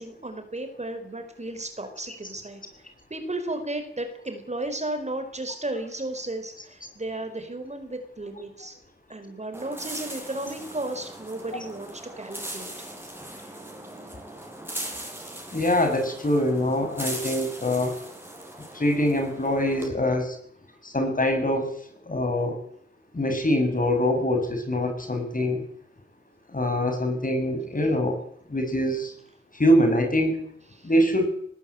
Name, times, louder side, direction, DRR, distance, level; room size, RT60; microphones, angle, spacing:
voice 1, 0.0-2.6 3.1-8.7 9.1-12.7 13.3-13.6 30.7-30.9, right 2 dB, 35° right, 7 dB, 4.8 m, -34 dB
sound 1, 9.5-19.9, right 1 dB, 10° right, 7.9 m, -39 dB
voice 2, 15.5-18.0 18.7-20.4 20.8-21.8 22.1-22.6 23.1-25.7 26.5-28.2 28.5-29.1 29.5-30.4 30.8-31.3, left 1 dB, 40° left, 5 dB, 6.9 m, -24 dB
19.0 x 18.0 x 8.7 m, 0.66 s
cardioid pair, 45°, 21 cm